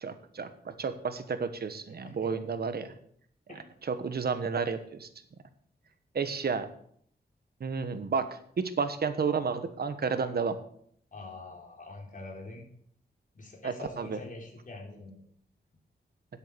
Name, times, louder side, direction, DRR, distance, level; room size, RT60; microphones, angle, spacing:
voice 1, 0.0-2.9 3.8-5.1 6.1-6.7 7.6-8.3 8.6-10.6 13.6-14.2, right 5 dB, 60° right, 10 dB, 1.3 m, -31 dB
voice 2, 11.1-12.6 13.3-15.2, left 2 dB, 50° left, 0 dB, 3.6 m, -44 dB
10.0 x 8.2 x 6.8 m, 0.64 s
wide cardioid pair, 105°, 18 cm